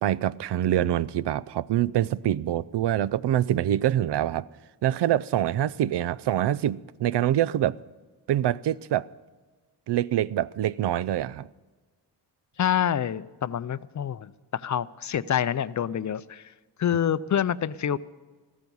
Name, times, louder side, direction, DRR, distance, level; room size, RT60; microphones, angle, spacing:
voice 1, 0.0-4.5 4.8-7.8 8.3-9.1 9.9-11.5, right 12 dB, 80° right, 0.5 m, -25 dB
voice 2, 12.6-16.5 16.8-18.0, left 9 dB, 45° left, 0.5 m, -27 dB
15.5 x 14.0 x 5.4 m
wide cardioid pair, 145°, 40 cm